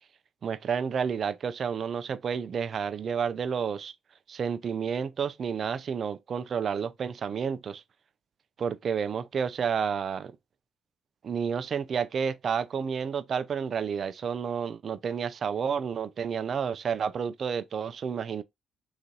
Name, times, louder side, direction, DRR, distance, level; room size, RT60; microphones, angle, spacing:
voice 1, 0.4-3.9 4.3-7.8 8.6-10.3 11.2-18.4, right 6 dB, 50° right, 0.5 m, -30 dB
4.0 x 3.1 x 3.9 m
cardioid pair, 90°, 0 cm